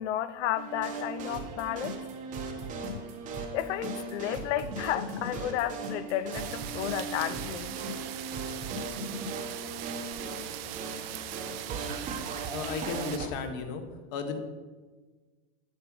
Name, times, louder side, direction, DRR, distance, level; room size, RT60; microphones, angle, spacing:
voice 1, 0.0-1.9 3.5-7.7, left 12 dB, 75° left, 0.6 m, -32 dB
sound 1, 0.6-13.3, right 4 dB, 20° right, 0.9 m, -39 dB
sound 2, 1.3-9.3, equal, 80° right, 2.7 m, -40 dB
sound 3, 6.3-13.2, right 12 dB, 55° right, 0.7 m, -40 dB
voice 2, 12.5-13.8 14.1-14.4, left 6 dB, 45° left, 1.2 m, -34 dB
9.9 x 5.0 x 6.0 m
supercardioid pair, 165°, 35 cm